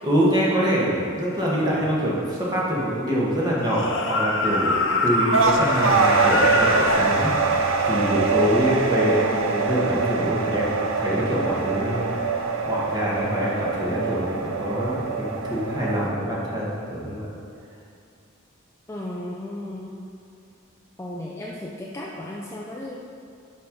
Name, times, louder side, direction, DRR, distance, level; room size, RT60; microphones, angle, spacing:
voice 1, 0.0-12.1 12.6-17.3, equal, 20° right, -6 dB, 1.4 m, -25 dB
sound 1, 3.6-7.0, left 2 dB, 65° left, 0.6 m, -24 dB
sound 2, 5.3-16.1, right 4 dB, 80° right, 0.5 m, -24 dB
voice 2, 18.9-19.9 21.0-22.9, left 1 dB, 15° left, -3 dB, 0.4 m, -34 dB
5.7 x 5.4 x 5.1 m, 2.5 s
head